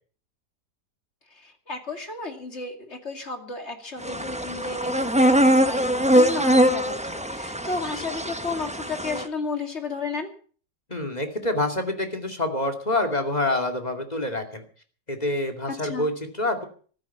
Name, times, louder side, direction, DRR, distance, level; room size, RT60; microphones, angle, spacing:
voice 1, 1.3-10.3 15.8-16.1, left 3 dB, 40° left, 5 dB, 2.8 m, -33 dB
sound 1, 4.0-9.2, equal, 5° right, 0.8 m, -22 dB
voice 2, 10.9-14.6 15.1-16.7, left 1 dB, 25° left, 4 dB, 2.5 m, -27 dB
14.5 x 14.0 x 5.8 m, 0.43 s
omnidirectional pair, 1.8 m